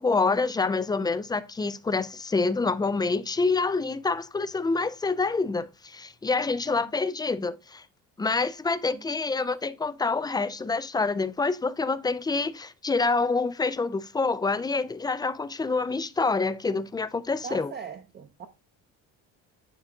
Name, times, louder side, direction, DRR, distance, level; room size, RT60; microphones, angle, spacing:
voice 1, 0.0-7.8 8.2-17.7, left 4 dB, 10° left, 0.4 m, -27 dB
voice 2, 17.4-18.5, right 6 dB, 30° right, 0.7 m, -40 dB
9.6 x 3.5 x 3.8 m
cardioid pair, 140°, 36 cm